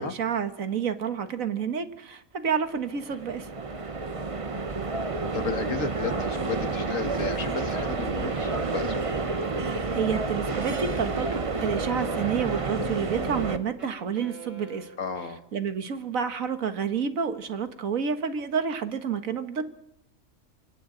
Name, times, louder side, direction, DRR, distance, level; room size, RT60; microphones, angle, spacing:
voice 1, 0.0-3.5 9.6-14.9 15.5-19.7, right 7 dB, 80° right, 9 dB, 1.8 m, -29 dB
sound 1, 2.7-13.6, right 3 dB, 25° right, 0.9 m, -30 dB
voice 2, 5.3-9.0 15.0-15.4, left 5 dB, 70° left, 8 dB, 2.0 m, -33 dB
Wind instrument woodwind instrument, 8.3-15.2, right 4 dB, 65° right, 3.4 m, -47 dB
27.0 x 25.5 x 3.9 m, 0.80 s
omnidirectional pair, 1.4 m